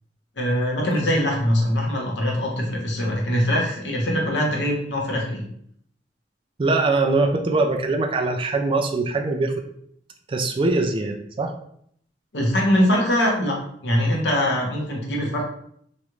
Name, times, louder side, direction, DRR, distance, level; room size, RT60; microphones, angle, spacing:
voice 1, 0.4-5.4 12.3-13.6 13.8-15.4, equal, 85° left, -2 dB, 1.0 m, -22 dB
voice 2, 6.6-9.5 10.3-11.6, right 3 dB, 30° right, 5 dB, 0.3 m, -22 dB
3.1 x 2.4 x 3.0 m, 0.68 s
head